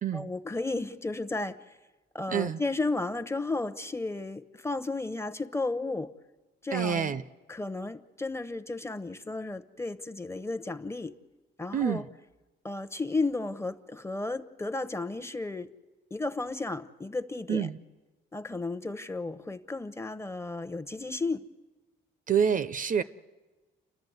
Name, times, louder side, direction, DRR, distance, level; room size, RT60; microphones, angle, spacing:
voice 1, 0.1-1.8 2.1-6.1 6.6-7.2 7.5-11.2 11.6-12.0 12.6-15.7 16.1-17.7 18.3-21.5, left 3 dB, 15° left, 0.9 m, -33 dB
voice 2, 6.7-7.2 11.7-12.1 17.5-17.8 22.3-23.0, right 7 dB, 40° right, 0.6 m, -27 dB
30.0 x 11.5 x 8.0 m
cardioid pair, 90°, 20 cm